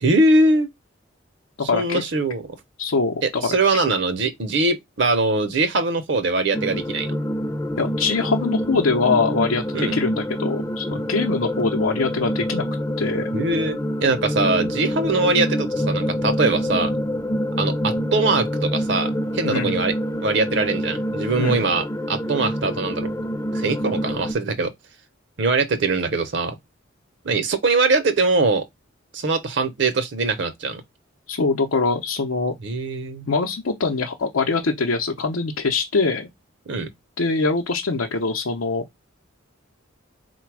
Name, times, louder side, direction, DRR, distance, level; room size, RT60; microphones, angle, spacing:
voice 1, 0.0-0.7 1.6-2.4 3.2-7.1 9.7-9.9 13.3-16.9 17.6-19.9 20.2-23.1 23.5-24.7 25.4-26.6 27.2-28.6 29.1-30.8 32.6-33.3 36.7-36.9, right 3 dB, 60° right, 0.7 m, -22 dB
voice 2, 1.7-2.0 2.8-3.6 7.8-12.6 13.0-13.3 19.4-19.8 21.4-21.7 31.3-32.5 33.3-36.3 37.2-38.8, left 4 dB, 90° left, 0.7 m, -23 dB
sound 1, 6.5-24.3, equal, 15° left, 0.4 m, -26 dB
4.1 x 2.2 x 4.6 m
head